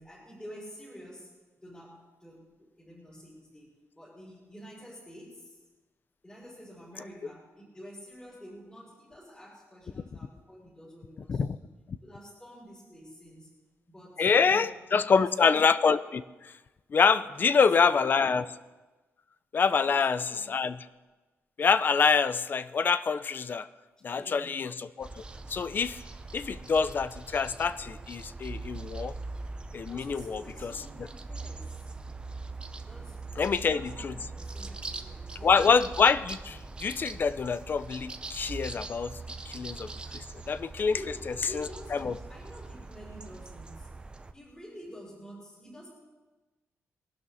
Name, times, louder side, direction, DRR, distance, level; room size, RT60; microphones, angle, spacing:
voice 1, 0.0-1.3 1.6-5.6 6.2-11.7 12.0-13.5 13.9-15.6 17.3-18.3 19.7-20.6 24.1-24.7 29.9-31.9 32.9-35.7 40.9-43.9 44.3-45.9, equal, 15° left, -8 dB, 5.7 m, -49 dB
voice 2, 14.2-16.5 16.9-18.4 19.5-20.8 21.6-23.7 24.0-25.2 25.5-26.0 26.3-29.1 29.7-30.7 33.4-34.1 35.4-39.2 39.5-41.0 41.5-41.7 41.9-42.1, left 5 dB, 40° left, 14 dB, 0.5 m, -26 dB
sound 1, 25.0-44.3, right 3 dB, 20° right, 0.7 m, -42 dB
22.5 x 12.0 x 4.2 m, 1.2 s
wide cardioid pair, 160°, 5 cm